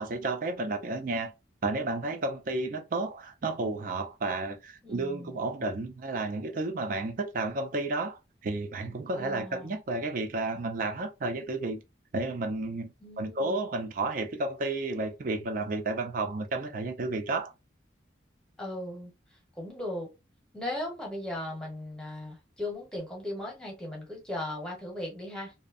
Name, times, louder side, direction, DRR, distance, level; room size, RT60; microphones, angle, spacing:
voice 1, 0.0-1.3 1.6-11.8 12.1-17.5, right 2 dB, 45° right, 0.4 m, -32 dB
voice 2, 4.8-5.4 9.1-9.8 13.0-13.6 18.6-19.1 19.6-20.1 20.5-25.5, left 1 dB, 5° left, 0.8 m, -37 dB
2.6 x 2.1 x 2.4 m
head